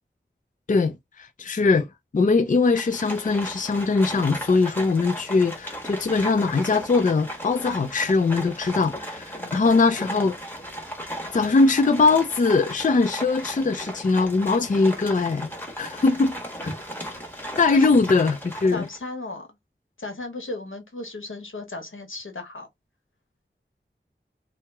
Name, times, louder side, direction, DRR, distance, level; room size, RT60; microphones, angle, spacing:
voice 1, 0.7-1.9 2.1-10.4 11.3-15.5 15.8-16.4 17.6-18.8, left 3 dB, 40° left, 0.4 m, -21 dB
Livestock farm animals working animals, 2.7-19.0, equal, 10° left, 1.1 m, -36 dB
voice 2, 9.4-9.7 16.6-16.7 17.7-17.9 18.7-19.5 20.0-22.7, left 2 dB, 80° left, 0.9 m, -35 dB
2.9 x 2.0 x 3.3 m
wide cardioid pair, 40°, 20 cm